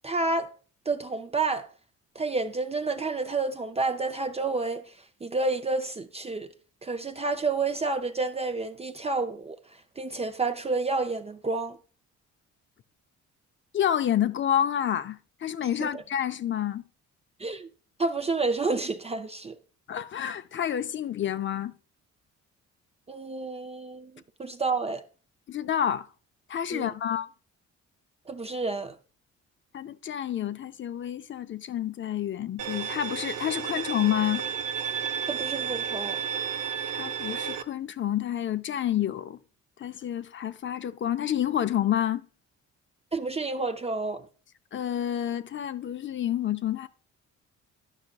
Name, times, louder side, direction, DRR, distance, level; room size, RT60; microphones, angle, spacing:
voice 1, 0.0-0.5 0.9-1.7 2.2-4.9 5.2-6.5 6.8-9.6 10.0-11.8 15.8-16.0 17.4-17.7 18.0-19.6 23.1-24.1 24.4-25.0 26.7-26.9 28.3-29.0 35.3-36.2 43.1-44.3, right 3 dB, 20° right, 0.4 m, -29 dB
voice 2, 13.7-16.8 19.9-21.7 25.5-26.1 26.5-27.3 29.7-34.5 36.9-39.4 39.8-42.2 44.7-46.9, left 10 dB, 40° left, 0.5 m, -29 dB
Bowed string instrument, 32.6-37.6, right 8 dB, 80° right, 0.6 m, -32 dB
10.5 x 5.6 x 2.3 m
cardioid pair, 90°, 30 cm